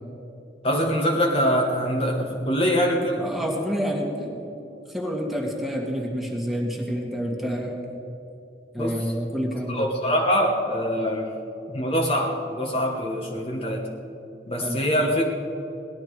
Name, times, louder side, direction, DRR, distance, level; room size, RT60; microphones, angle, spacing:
voice 1, 0.6-3.2 8.8-9.0 9.7-11.3 11.7-13.9 14.5-15.2, equal, 35° left, 0 dB, 1.2 m, -24 dB
voice 2, 3.2-4.4 4.9-7.8 8.7-9.9 14.6-14.8, equal, ahead, -1 dB, 1.7 m, -28 dB
18.0 x 12.0 x 4.7 m, 2.9 s
head